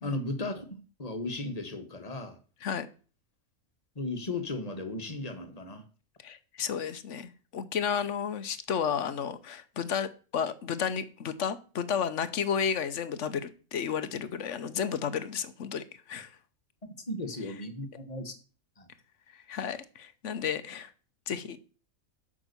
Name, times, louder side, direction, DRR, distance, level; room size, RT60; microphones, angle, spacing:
voice 1, 0.0-2.4 3.9-5.8 16.8-18.3 18.8-18.9, left 2 dB, 30° left, 7 dB, 1.4 m, -36 dB
voice 2, 6.2-16.3 19.5-20.9 21.3-21.6, left 7 dB, 60° left, 13 dB, 1.0 m, -32 dB
8.4 x 6.2 x 6.7 m, 0.38 s
omnidirectional pair, 1.5 m